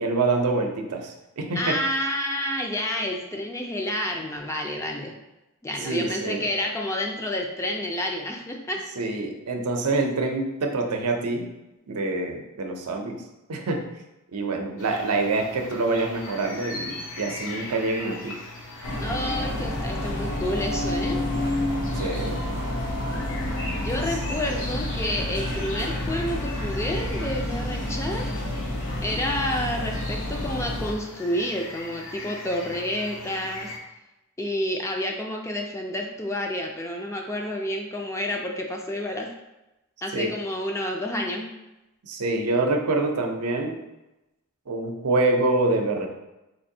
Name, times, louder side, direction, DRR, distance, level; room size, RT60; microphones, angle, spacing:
voice 1, 0.0-1.8 5.8-6.4 9.0-11.5 11.9-13.2 13.5-13.9 14.3-18.4 21.9-22.4 40.1-40.3 42.0-43.8 44.7-46.1, right 3 dB, 85° right, 3 dB, 0.6 m, -26 dB
voice 2, 1.6-5.1 5.6-8.8 19.0-21.2 23.1-23.2 23.8-28.3 29.0-33.7 34.4-39.3 40.0-41.5, left 1 dB, 15° left, 1 dB, 0.4 m, -29 dB
sound 1, 14.8-33.8, left 2 dB, 60° left, 0.7 m, -40 dB
sound 2, 18.8-30.9, left 1 dB, 85° left, 0.9 m, -29 dB
4.2 x 2.5 x 2.7 m, 0.98 s
head